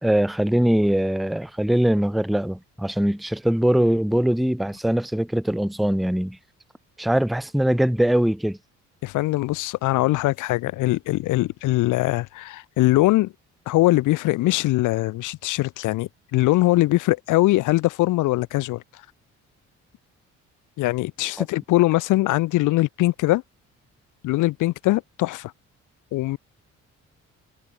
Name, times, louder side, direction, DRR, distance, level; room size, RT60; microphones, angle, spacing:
voice 1, 0.0-6.4 7.0-8.6 21.4-21.5, right 1 dB, ahead, 0.8 m, -22 dB
voice 2, 9.0-13.3 13.7-18.8 20.8-23.4 24.2-25.5 26.1-26.4, left 18 dB, 85° left, 0.6 m, -21 dB
cardioid pair, 90°, 30 cm